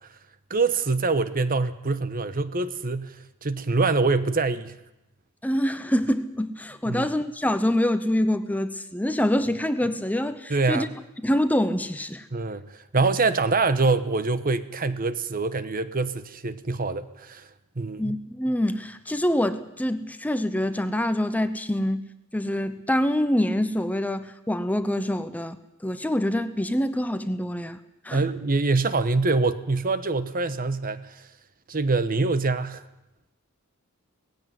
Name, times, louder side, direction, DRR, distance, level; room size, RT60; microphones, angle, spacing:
voice 1, 0.5-3.2 3.4-4.7 6.9-7.1 10.5-10.9 12.3-12.6 12.9-17.4 17.8-18.2 28.1-31.1 31.7-32.8, right 3 dB, 40° right, 13 dB, 1.1 m, -24 dB
voice 2, 5.4-10.9 11.2-12.3 18.0-22.0 22.3-27.8 28.0-28.2, left 1 dB, 5° left, 11 dB, 0.8 m, -25 dB
18.5 x 16.0 x 9.4 m, 0.92 s
head